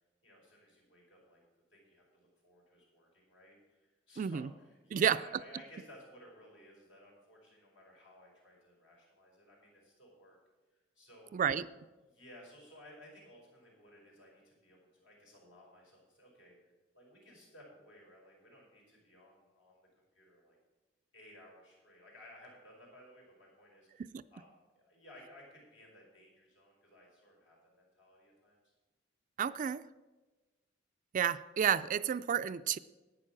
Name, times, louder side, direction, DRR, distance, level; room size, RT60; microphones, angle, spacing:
voice 1, 0.2-1.4 1.7-10.4 10.7-11.3 12.0-20.6 21.1-24.5 24.7-28.6, left 1 dB, 70° left, -2 dB, 5.0 m, -58 dB
voice 2, 4.2-4.5 4.9-5.2 11.3-11.7 24.0-24.2 29.4-29.8 31.1-32.8, right 8 dB, 45° right, 15 dB, 0.3 m, -31 dB
11.0 x 9.2 x 6.0 m, 1.2 s
head